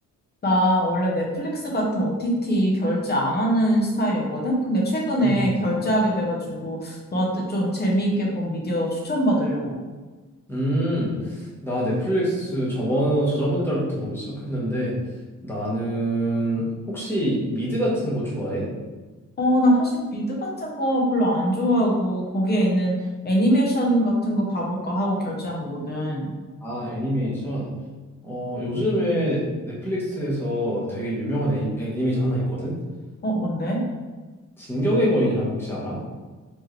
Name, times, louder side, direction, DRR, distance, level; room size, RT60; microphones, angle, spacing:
voice 1, 0.4-9.7 19.4-22.9 23.2-26.3 33.2-33.8, equal, 35° left, -2 dB, 0.8 m, -23 dB
voice 2, 10.5-14.9 15.4-18.6 26.6-27.7 28.2-32.7 34.6-36.0, equal, 5° left, -7 dB, 1.1 m, -25 dB
4.4 x 3.0 x 3.2 m, 1.3 s
wide cardioid pair, 165°, 30 cm